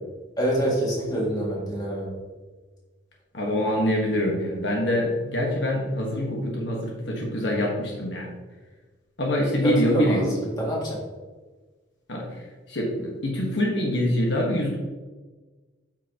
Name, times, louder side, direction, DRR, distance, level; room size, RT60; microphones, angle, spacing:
voice 1, 0.4-2.2 9.6-11.0, right 1 dB, 20° left, -4 dB, 2.2 m, -26 dB
voice 2, 3.3-8.3 9.2-10.2 12.1-14.8, left 1 dB, 65° left, -2 dB, 1.4 m, -25 dB
8.6 x 6.0 x 2.9 m, 1.3 s
head